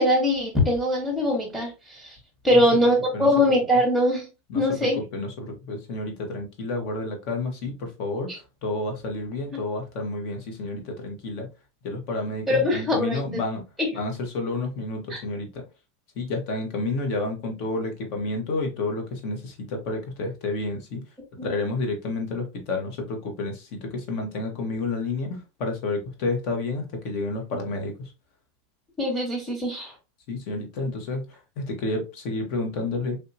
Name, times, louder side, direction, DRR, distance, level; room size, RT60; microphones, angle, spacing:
voice 1, 0.0-2.2 2.4-4.3 4.5-5.0 8.3-8.4 12.5-13.2 13.8-13.9 15.1-15.2 21.4-21.5 29.0-29.9, left 1 dB, 5° left, 1.2 m, -22 dB
voice 2, 4.5-11.5 11.8-13.6 13.9-15.6 16.1-21.0 21.4-28.1 30.3-33.2, left 2 dB, 50° left, 1.1 m, -30 dB
3.4 x 2.7 x 2.7 m
supercardioid pair, 145°, 0 cm